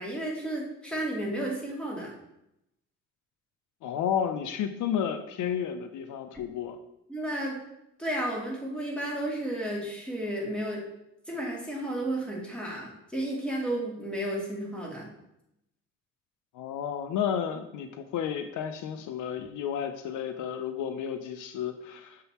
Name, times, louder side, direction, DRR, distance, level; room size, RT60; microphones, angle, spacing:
voice 1, 0.0-2.1 7.1-7.6 8.0-10.8 11.3-15.1, right 1 dB, 5° left, -3 dB, 2.1 m, -32 dB
voice 2, 3.8-6.8 16.5-22.2, left 8 dB, 80° left, 8 dB, 0.6 m, -32 dB
6.7 x 3.8 x 4.2 m, 0.84 s
cardioid pair, 90°, 30 cm